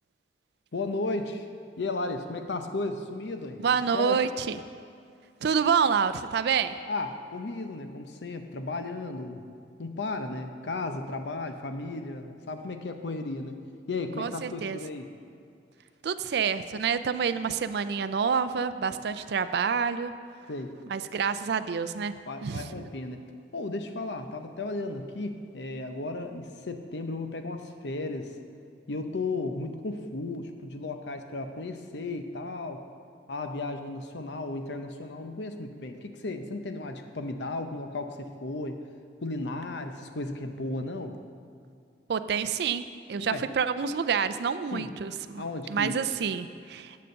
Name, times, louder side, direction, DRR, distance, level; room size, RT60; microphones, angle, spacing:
voice 1, 0.7-1.5 1.8-3.6 3.9-4.2 6.9-9.4 9.8-13.6 13.9-15.1 18.9-19.0 20.5-20.8 22.3-23.2 23.5-28.3 28.9-32.9 33.3-38.8 39.2-41.2 43.3-43.4 44.7-44.9 45.3-46.0, left 2 dB, 80° left, 7 dB, 0.8 m, -34 dB
voice 2, 3.6-4.6 5.4-6.8 14.2-14.8 16.0-20.1 20.9-22.1 22.4-22.7 42.1-42.8 43.1-47.0, right 6 dB, 65° right, 12 dB, 0.4 m, -28 dB
8.5 x 6.8 x 6.5 m, 2.3 s
head